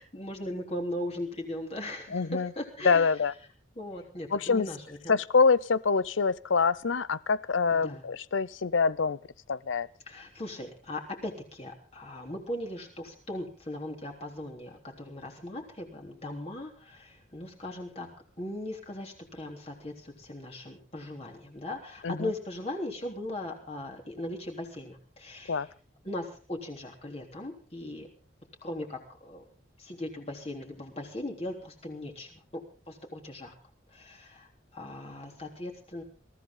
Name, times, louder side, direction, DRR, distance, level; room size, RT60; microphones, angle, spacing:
voice 1, 0.0-3.2 3.8-5.2 7.7-8.0 10.1-18.1 18.4-25.7 26.0-28.1 28.6-29.4 29.8-33.5 33.9-36.0, left 1 dB, 30° left, 3.5 m, -39 dB
voice 2, 2.1-2.5 2.8-3.3 4.3-4.7 5.1-9.2 9.5-9.9 22.0-22.3 25.5-25.7, left 5 dB, 85° left, 0.7 m, -25 dB
22.0 x 14.5 x 3.9 m
head